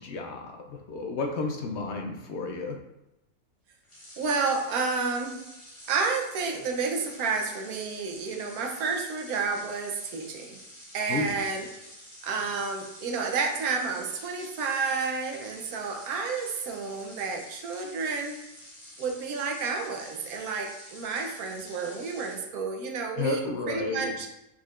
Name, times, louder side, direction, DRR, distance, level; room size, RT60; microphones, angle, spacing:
voice 1, 0.0-2.8 11.1-11.4 23.1-24.1, left 3 dB, 65° left, 2 dB, 0.7 m, -32 dB
sound 1, 3.8-22.5, equal, 25° left, 1.1 m, -48 dB
voice 2, 4.2-5.4 5.9-10.6 10.9-11.7 12.2-18.4 19.0-24.3, right 4 dB, 85° right, 3 dB, 1.2 m, -30 dB
4.8 x 4.1 x 2.4 m, 0.91 s
omnidirectional pair, 1.5 m